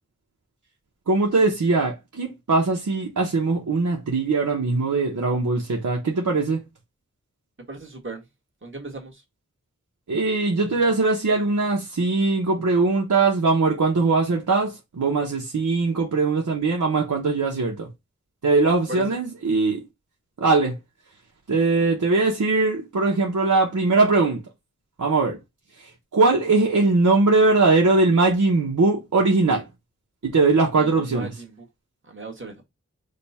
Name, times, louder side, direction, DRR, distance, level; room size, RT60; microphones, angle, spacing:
voice 1, 1.1-6.6 10.1-17.9 18.4-19.8 20.4-20.8 21.5-24.4 25.0-25.4 26.1-29.6 30.2-31.3, right 3 dB, 85° right, 1.0 m, -21 dB
voice 2, 7.6-8.2 8.6-9.2 18.9-19.2 30.8-31.7 32.0-32.6, right 2 dB, 40° right, 1.7 m, -37 dB
5.1 x 2.3 x 4.1 m
wide cardioid pair, 60°, 29 cm